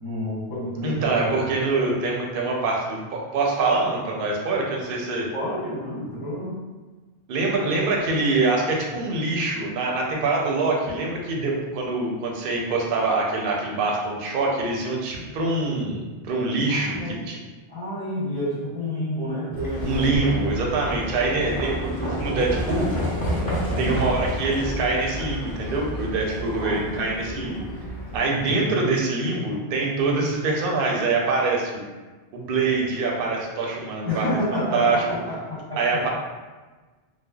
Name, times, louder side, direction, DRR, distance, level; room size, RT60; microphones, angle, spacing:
voice 1, 0.0-1.3 5.3-6.6 16.7-17.1 17.7-20.2 23.7-24.0 26.6-27.1 28.4-28.7 34.0-36.0, left 1 dB, 25° right, -10 dB, 0.6 m, -29 dB
voice 2, 0.8-5.3 7.3-17.4 19.8-22.9 23.8-27.7 28.1-31.8 32.3-34.2 34.5-35.0 35.8-36.1, right 3 dB, 60° right, -1 dB, 0.7 m, -24 dB
Livestock farm animals working animals, 19.5-28.2, equal, 10° left, 0.9 m, -30 dB
3.2 x 2.0 x 2.2 m, 1.3 s
omnidirectional pair, 1.1 m